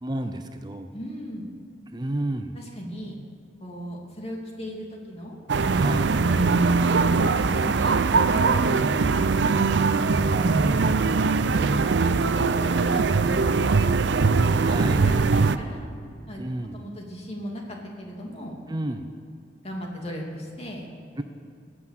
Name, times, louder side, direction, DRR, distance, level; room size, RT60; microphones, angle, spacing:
voice 1, 0.0-0.9 1.9-2.6 5.7-6.1 10.3-11.3 14.6-15.1 16.4-16.9 18.7-19.1 21.2-21.3, right 1 dB, 25° right, 7 dB, 0.6 m, -31 dB
voice 2, 0.9-1.5 2.5-3.2 3.6-5.4 5.7-10.0 11.6-13.9 14.6-15.9 16.3-16.4 16.7-18.6 19.6-20.9, equal, 35° left, -1 dB, 2.6 m, -37 dB
sound 1, 5.5-15.6, right 4 dB, 70° right, 0.5 m, -21 dB
19.0 x 7.9 x 7.4 m, 2.5 s
head